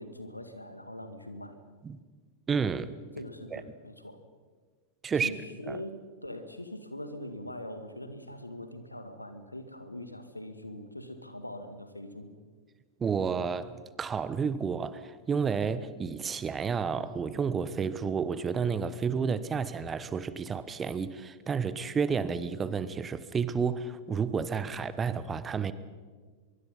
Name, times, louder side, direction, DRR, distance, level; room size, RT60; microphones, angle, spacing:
voice 1, 0.0-1.6 3.2-4.2 5.2-12.3, left 1 dB, 85° left, 1.9 m, -42 dB
voice 2, 2.5-2.9 3.5-3.6 5.0-5.3 5.7-5.8 13.0-25.7, right 6 dB, 20° right, 1.1 m, -31 dB
24.0 x 23.0 x 5.5 m
figure-of-eight pair, 90°, 0 cm